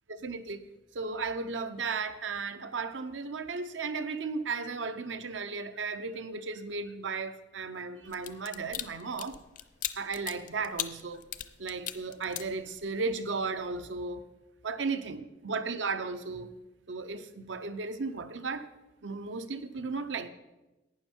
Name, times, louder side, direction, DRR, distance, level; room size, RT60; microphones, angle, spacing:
voice 1, 0.1-0.6 0.9-9.4 10.0-11.2 11.6-14.3 14.6-16.5 16.9-18.7 19.0-20.3, right 4 dB, 85° right, 10 dB, 0.8 m, -35 dB
sound 1, 8.1-13.1 13.5-13.7, left 11 dB, 45° left, 0.5 m, -38 dB
11.5 x 9.0 x 4.5 m, 1.0 s
head